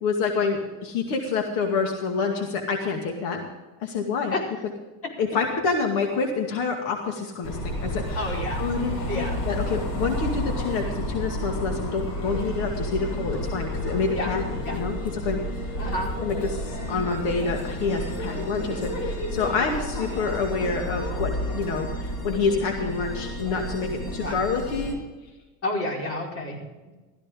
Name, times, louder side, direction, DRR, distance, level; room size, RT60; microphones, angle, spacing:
voice 1, 0.0-3.4 3.8-4.3 5.2-8.3 8.6-15.0 15.2-15.4 16.2-16.6 16.9-25.0, left 4 dB, 75° left, 2 dB, 2.3 m, -27 dB
sound 1, 7.4-24.9, equal, 50° left, 5.4 m, -31 dB
voice 2, 8.1-8.6 9.1-9.3 14.1-14.3 14.7-14.8 15.8-16.1 22.8-22.9 24.1-24.4 25.6-26.9, left 1 dB, 35° left, -1 dB, 4.8 m, -30 dB
16.5 x 14.0 x 3.8 m, 1.2 s
cardioid pair, 140°, 38 cm